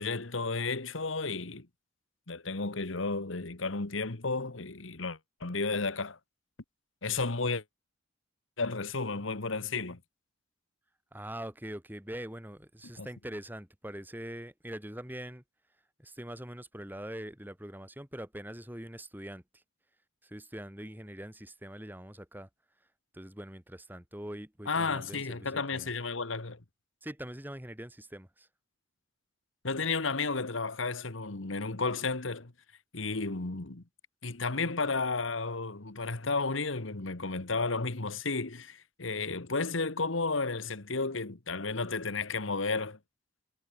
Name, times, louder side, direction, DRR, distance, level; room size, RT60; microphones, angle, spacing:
voice 1, 0.0-1.7 2.3-6.2 7.0-7.6 8.6-10.0 13.0-13.1 24.7-26.6 29.6-32.5 32.9-33.8 34.2-43.0, left 3 dB, 80° left, 1.6 m, -32 dB
voice 2, 11.1-15.4 16.0-19.4 20.2-22.5 23.1-25.9 27.0-28.5, right 1 dB, 10° right, 3.1 m, -43 dB
head